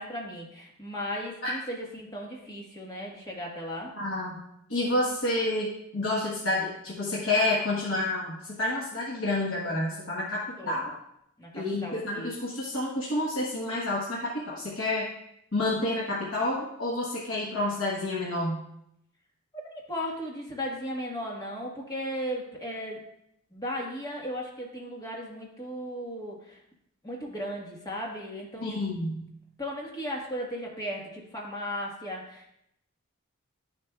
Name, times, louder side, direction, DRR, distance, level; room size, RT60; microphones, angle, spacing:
voice 1, 0.0-3.9 10.6-10.8 11.4-12.3 19.6-23.0 23.5-26.6 27.0-28.7 29.6-32.6, equal, 20° left, -2 dB, 1.4 m, -36 dB
voice 2, 4.0-4.4 4.7-10.4 10.7-10.9 11.5-15.1 15.5-18.6 28.6-29.3, left 2 dB, 70° left, -5 dB, 1.2 m, -29 dB
11.0 x 6.8 x 2.3 m, 0.77 s
head